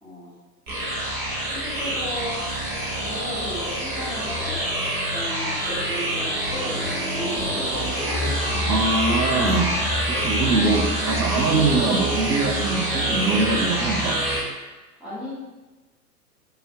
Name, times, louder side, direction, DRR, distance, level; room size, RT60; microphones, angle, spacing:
voice 1, 0.0-0.3 1.4-2.5 3.0-4.6 5.1-7.7 15.0-15.4, equal, ahead, -11 dB, 0.6 m, -35 dB
sound 1, 0.7-14.4, right 1 dB, 35° right, 1.1 m, -26 dB
Speech, 7.4-10.8, left 4 dB, 50° left, 0.7 m, -37 dB
voice 2, 8.7-9.7 10.1-14.2, right 3 dB, 80° right, 3 dB, 0.6 m, -23 dB
3.3 x 2.2 x 2.7 m, 1.2 s
figure-of-eight pair, 110°, 49 cm